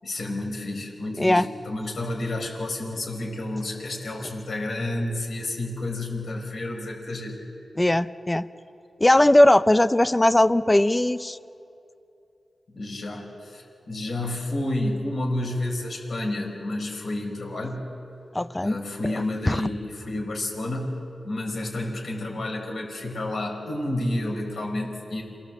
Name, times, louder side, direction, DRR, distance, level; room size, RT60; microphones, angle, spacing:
voice 1, 0.0-7.4 12.7-17.9 18.6-25.2, left 1 dB, 70° left, 0 dB, 5.3 m, -30 dB
voice 2, 7.8-8.5 9.0-11.4 18.3-18.7 19.1-19.2 19.5-19.6, left 1 dB, 20° left, 13 dB, 0.6 m, -19 dB
28.0 x 17.5 x 7.7 m, 2.7 s
wide cardioid pair, 85°, 0 cm